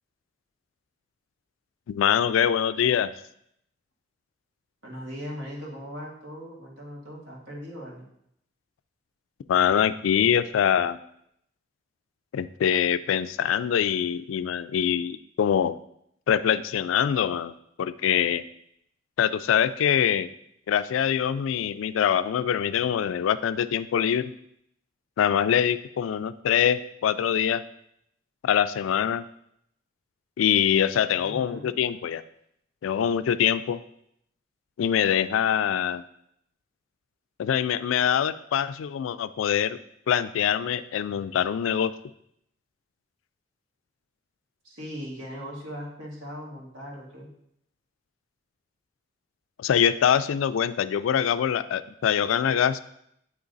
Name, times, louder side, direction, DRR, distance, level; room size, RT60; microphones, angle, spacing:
voice 1, 1.9-3.1 9.5-11.0 12.3-15.8 16.3-17.5 17.8-18.4 19.2-20.3 20.7-24.3 25.2-27.6 28.4-29.3 30.4-32.2 32.8-33.8 34.8-36.0 37.4-39.8 40.1-41.9 49.6-52.8, left 9 dB, 90° left, 14 dB, 0.3 m, -24 dB
voice 2, 4.8-8.1 31.1-31.7 44.6-47.3, equal, 90° right, -4 dB, 1.8 m, -39 dB
8.2 x 3.1 x 3.9 m, 0.74 s
head